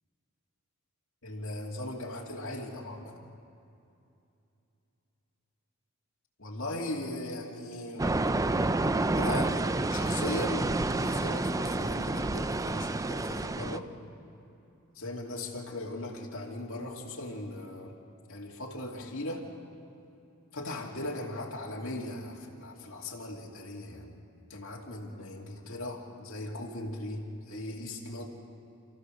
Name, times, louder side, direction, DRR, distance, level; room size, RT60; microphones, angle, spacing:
voice 1, 1.2-3.2 6.4-8.1 9.1-13.9 15.0-17.9 18.3-19.5 20.5-24.1 24.5-28.2, left 1 dB, 60° left, -2 dB, 2.7 m, -38 dB
sound 1, 8.0-13.8, right 2 dB, 15° right, 0.4 m, -29 dB
28.5 x 15.0 x 6.5 m, 2.7 s
head